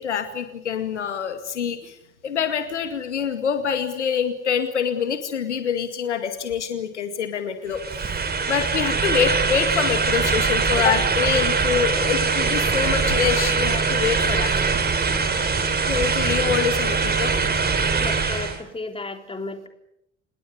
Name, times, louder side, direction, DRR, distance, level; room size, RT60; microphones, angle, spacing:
voice 1, 0.0-2.0 2.2-7.8 8.5-14.5 15.8-17.3, left 7 dB, 75° left, 8 dB, 2.2 m, -25 dB
sound 1, 7.7-18.6, right 5 dB, 25° right, 4.2 m, -22 dB
voice 2, 18.0-19.7, left 2 dB, 15° left, 6 dB, 3.7 m, -33 dB
27.0 x 20.0 x 8.3 m, 0.79 s
figure-of-eight pair, 60°, 35 cm